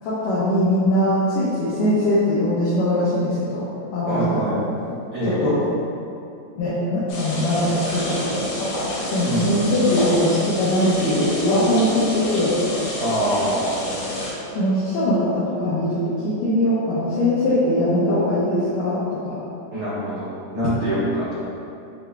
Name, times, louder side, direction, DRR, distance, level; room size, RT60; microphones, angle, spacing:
voice 1, 0.0-3.6 3.9-4.6 5.3-5.6 6.6-8.7 9.1-12.6 14.6-19.4, left 1 dB, 90° left, -10 dB, 1.9 m, -21 dB
voice 2, 4.1-4.6 5.1-5.4 9.2-9.5 13.0-13.8 19.7-21.4, equal, 80° right, -11 dB, 1.6 m, -24 dB
sound 1, 7.1-14.3, left 1 dB, 70° left, 2.3 m, -28 dB
6.8 x 2.9 x 2.3 m, 2.6 s
omnidirectional pair, 4.6 m